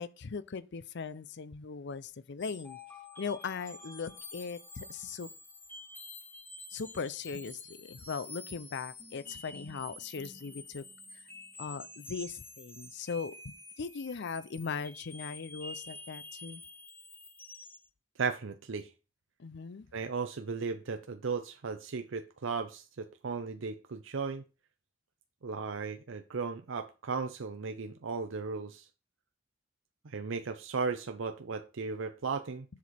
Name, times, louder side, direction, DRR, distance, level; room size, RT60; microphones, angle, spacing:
voice 1, 0.0-2.8 3.2-5.3 6.7-10.8 11.6-16.6 19.4-19.9, left 5 dB, 60° left, 0.6 m, -39 dB
sound 1, 2.4-17.9, left 2 dB, 10° left, 0.9 m, -49 dB
voice 2, 18.2-18.9 19.9-24.4 25.4-28.9 30.0-32.7, right 5 dB, 70° right, 0.6 m, -36 dB
7.4 x 6.2 x 4.2 m
head